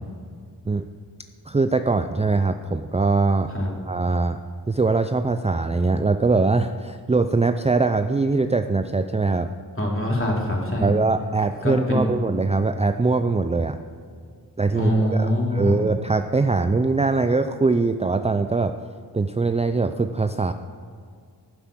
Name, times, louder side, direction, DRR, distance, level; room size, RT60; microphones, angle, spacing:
voice 1, 1.5-3.5 3.9-4.4 4.7-9.5 10.8-13.8 14.6-18.7 19.1-20.5, right 3 dB, 15° right, 8 dB, 0.4 m, -22 dB
voice 2, 9.8-10.9 11.6-12.1 14.7-15.7, left 1 dB, 30° left, -2 dB, 3.1 m, -23 dB
9.6 x 8.0 x 6.1 m, 2.1 s
cardioid pair, 45°, 41 cm